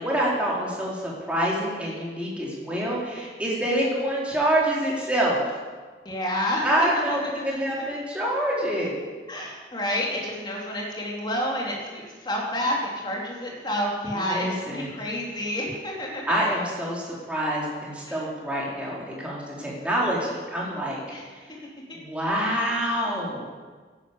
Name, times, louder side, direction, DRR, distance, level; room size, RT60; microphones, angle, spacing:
voice 1, 0.0-5.4 6.6-8.9 14.1-15.1 16.3-21.0 21.3-21.4 21.9-23.4, right 1 dB, 5° right, -5 dB, 3.8 m, -26 dB
voice 2, 6.0-7.6 9.3-16.2 18.1-18.2 21.1-21.2, equal, 25° left, -2 dB, 3.2 m, -29 dB
11.5 x 11.0 x 8.1 m, 1.4 s
head